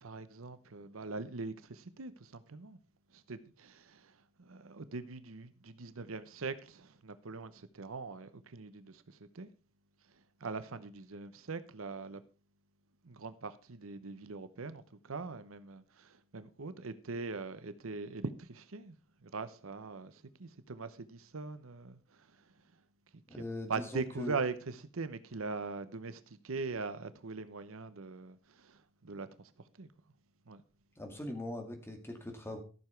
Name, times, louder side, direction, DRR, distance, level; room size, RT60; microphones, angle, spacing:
voice 1, 0.0-2.8 3.1-9.5 10.4-12.2 13.0-19.0 19.2-22.5 23.1-23.4 23.7-29.5 29.8-29.9 30.5-30.6, right 4 dB, 70° right, 0.8 m, -42 dB
voice 2, 23.3-24.3 31.0-32.6, left 1 dB, 10° left, 2.2 m, -41 dB
14.0 x 7.0 x 4.6 m
head